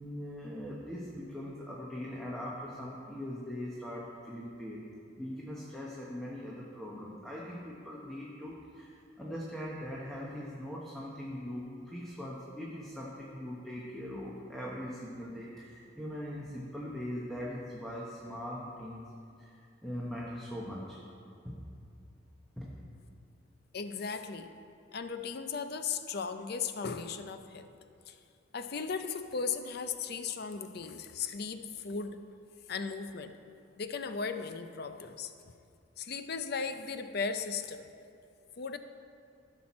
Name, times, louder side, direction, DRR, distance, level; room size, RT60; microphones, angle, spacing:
voice 1, 0.0-4.9 5.2-19.1 19.4-21.0 21.4-21.6 22.6-22.7, equal, ahead, -5 dB, 0.9 m, -41 dB
voice 2, 23.7-24.5 24.9-27.7 28.1-28.2 28.5-32.2 32.7-33.4 33.8-35.3 36.0-37.9 38.6-38.8, left 5 dB, 50° left, 9 dB, 0.5 m, -36 dB
14.5 x 6.1 x 4.3 m, 2.5 s
head